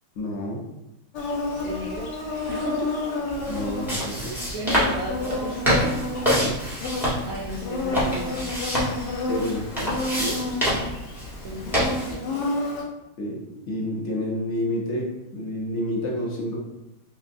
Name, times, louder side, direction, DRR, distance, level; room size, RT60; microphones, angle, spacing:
voice 1, 0.2-0.6 3.5-4.4 6.3-6.5 9.3-10.4 13.2-16.6, left 1 dB, 55° left, -2 dB, 0.8 m, -29 dB
Insect, 1.1-12.8, left 2 dB, 75° left, 1.2 m, -30 dB
voice 2, 1.6-2.1 2.5-2.9 4.5-6.1 7.3-8.4 11.4-12.4, right 2 dB, 70° right, -3 dB, 0.8 m, -34 dB
sound 1, 2.2-3.0 4.2-4.3 4.7-6.6 7.0-8.0, equal, 45° right, 0.5 m, -45 dB
sound 2, 3.3-12.1, equal, ahead, 0.9 m, -27 dB
5.9 x 2.1 x 2.5 m, 0.91 s
omnidirectional pair, 1.9 m